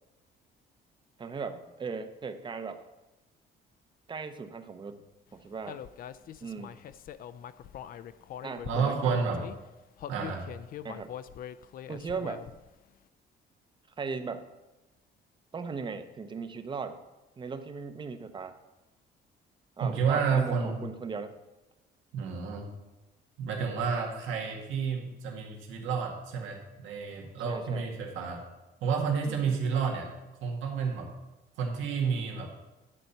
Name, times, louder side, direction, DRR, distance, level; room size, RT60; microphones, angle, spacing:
voice 1, 1.2-2.8 4.1-5.0 5.3-5.8 6.4-6.8 8.4-9.2 10.8-11.1 11.9-12.4 14.0-14.5 15.5-17.0 17.4-18.5 19.8-21.4 27.4-27.9 29.2-29.6, right 5 dB, 25° right, 9 dB, 0.7 m, -38 dB
Human voice, 5.7-9.6 10.0-12.7, left 10 dB, 50° left, 0.4 m, -43 dB
voice 2, 8.6-9.4 10.1-10.4 19.8-20.8 22.1-22.7 23.4-28.5 28.8-30.1 30.4-31.1 31.6-32.5, right 5 dB, 90° right, 0 dB, 1.8 m, -30 dB
11.0 x 4.3 x 6.7 m, 1.0 s
cardioid pair, 140°, 19 cm